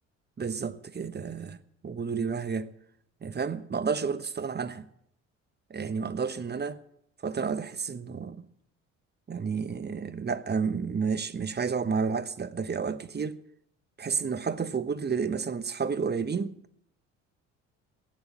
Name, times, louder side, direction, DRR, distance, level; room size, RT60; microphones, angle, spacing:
voice 1, 0.4-1.6 1.8-2.7 3.2-4.9 5.7-6.8 7.2-8.4 9.3-13.4 14.0-16.5, right 5 dB, 25° right, 1.1 m, -31 dB
16.0 x 9.8 x 8.5 m
hypercardioid pair, 60°, 36 cm